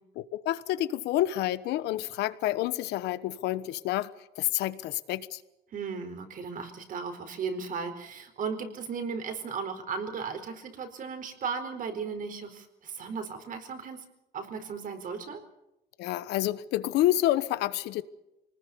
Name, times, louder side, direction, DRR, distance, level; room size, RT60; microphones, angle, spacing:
voice 1, 0.2-4.1 4.4-5.4 16.0-18.0, left 14 dB, 85° left, 1.2 m, -28 dB
voice 2, 5.7-14.0 14.3-15.4, right 5 dB, 55° right, 4.4 m, -36 dB
25.5 x 19.5 x 6.9 m
cardioid pair, 110°, 17 cm